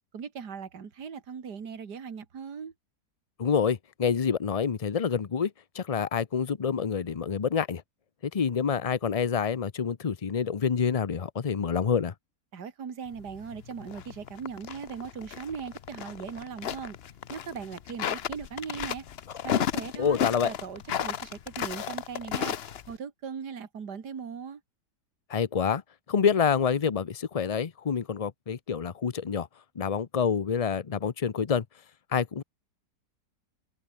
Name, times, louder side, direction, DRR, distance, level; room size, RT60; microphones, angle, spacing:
voice 1, 0.1-2.7 12.5-17.0 17.3-19.1 19.4-20.2 20.4-22.6 22.9-24.6, right 6 dB, 70° right, 2.6 m, -39 dB
voice 2, 3.4-7.8 8.2-12.1 20.0-20.5 25.3-25.8 26.1-29.5 29.8-31.6 32.1-32.4, left 6 dB, 70° left, 0.3 m, -27 dB
sound 1, 13.2-23.0, left 9 dB, 55° left, 0.7 m, -34 dB
omnidirectional pair, 1.8 m